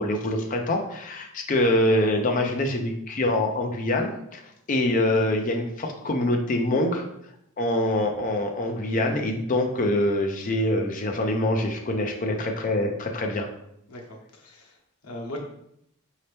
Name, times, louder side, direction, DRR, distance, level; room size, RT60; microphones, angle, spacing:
voice 1, 0.0-4.4 4.7-7.0 7.6-13.5, left 1 dB, 35° left, 3 dB, 0.5 m, -25 dB
voice 2, 13.9-15.4, left 1 dB, 90° left, 0 dB, 0.9 m, -40 dB
4.2 x 2.8 x 3.3 m, 0.77 s
head